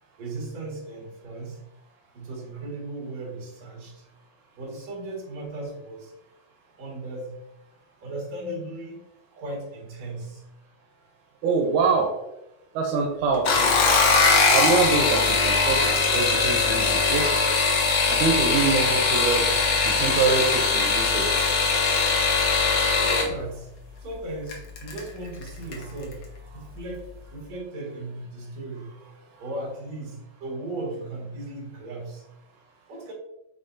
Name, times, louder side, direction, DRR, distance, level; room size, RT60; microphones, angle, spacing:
voice 1, 0.2-1.6 2.1-3.9 4.6-6.1 6.8-7.4 8.0-9.0 9.3-10.4 23.0-23.7 24.0-26.3 26.5-27.0 27.3-29.0 29.4-32.2 32.9-33.1, right 2 dB, 65° right, -4 dB, 3.3 m, -36 dB
voice 2, 11.4-12.1 12.8-13.8 14.5-17.5 18.1-19.6 19.8-21.4, right 4 dB, 90° right, 1 dB, 2.3 m, -25 dB
sound 1, 13.3-23.3 24.5-25.0 25.4-25.8 26.1-26.2, left 4 dB, 65° left, 1.4 m, -21 dB
9.8 x 3.7 x 2.7 m, 0.88 s
omnidirectional pair, 3.4 m